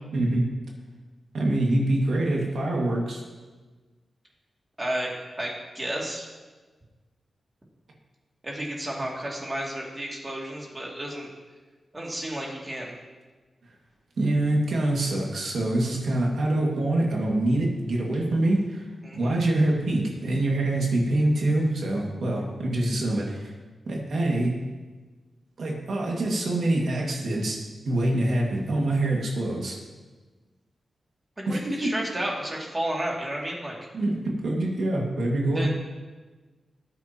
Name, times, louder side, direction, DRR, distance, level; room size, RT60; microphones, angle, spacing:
voice 1, 0.1-0.5 1.3-3.2 14.2-18.8 19.1-23.5 23.9-24.6 25.6-29.8 31.5-32.0 33.9-35.7, right 1 dB, 70° right, -1 dB, 2.0 m, -25 dB
voice 2, 4.8-6.3 8.4-11.3 11.9-12.9 19.0-19.4 31.4-33.8 35.5-35.7, right 1 dB, 20° right, -3 dB, 2.5 m, -32 dB
18.5 x 9.2 x 2.9 m, 1.3 s
wide cardioid pair, 120°, 0 cm